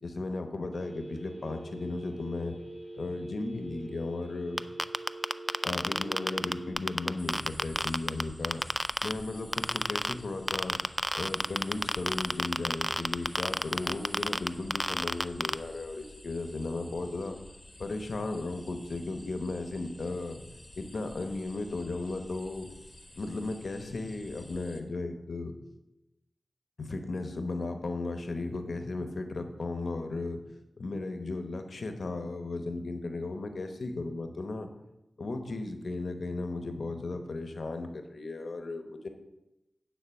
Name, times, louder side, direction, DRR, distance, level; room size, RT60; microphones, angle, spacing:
voice 1, 0.0-2.6 2.9-4.6 5.6-8.6 9.0-10.8 11.1-17.4 17.8-20.4 20.8-22.7 23.2-25.6 26.8-30.4 30.8-34.7 35.2-39.1, left 2 dB, 75° left, 6 dB, 0.9 m, -35 dB
Telephone, 0.7-6.7, right 2 dB, 85° right, 2.2 m, -44 dB
sound 1, 4.6-9.1 9.5-10.1 10.5-15.5, equal, ahead, 0.3 m, -28 dB
sound 2, 7.2-24.8, left 1 dB, 25° left, 1.0 m, -51 dB
9.4 x 4.0 x 7.0 m, 0.96 s
wide cardioid pair, 55°, 0 cm